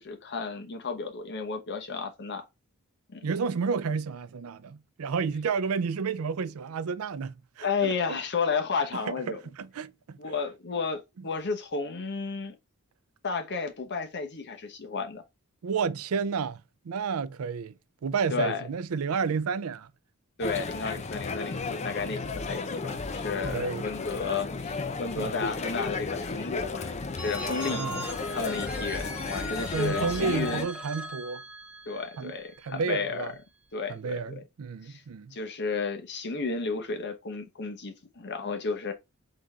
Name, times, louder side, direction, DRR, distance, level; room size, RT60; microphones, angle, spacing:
voice 1, 0.0-2.4 3.1-3.3 7.6-9.4 10.2-12.5 13.2-15.2 18.3-18.6 20.4-27.8 28.3-30.7 31.9-33.3 33.7-34.4 34.8-35.0 35.3-38.9, left 4 dB, 55° left, 0.9 m, -32 dB
voice 2, 3.2-8.2 8.9-10.2 15.6-17.7 18.0-19.9 23.5-23.9 25.2-25.5 27.7-28.0 29.7-31.4 32.2-32.4 32.6-33.3 33.9-35.3, right 5 dB, 75° right, 0.4 m, -31 dB
sound 1, 20.4-30.6, left 3 dB, 30° left, 0.5 m, -34 dB
Telephone, 27.2-32.9, equal, 5° right, 1.2 m, -39 dB
3.9 x 3.3 x 3.6 m
head